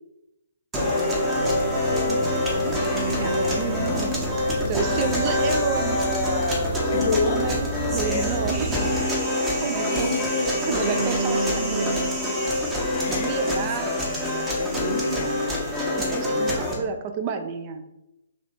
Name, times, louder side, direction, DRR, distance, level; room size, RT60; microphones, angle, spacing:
sound 1, 0.7-16.7, left 1 dB, 15° right, 0.8 m, -25 dB
voice 1, 1.3-2.8 3.1-3.4 3.7-4.2 4.6-5.4 6.9-7.5 9.8-10.6 12.9-15.5, left 5 dB, 50° left, 8 dB, 0.3 m, -32 dB
sound 2, 1.3-9.0, right 2 dB, 65° right, 1.3 m, -33 dB
voice 2, 3.2-4.3 4.7-6.0 6.9-7.7 7.9-8.8 9.5-10.1 10.6-12.0 13.1-13.9 16.0-17.8, right 6 dB, 30° right, 6 dB, 0.4 m, -30 dB
3.0 x 2.7 x 4.1 m, 0.92 s
figure-of-eight pair, 130°, 0 cm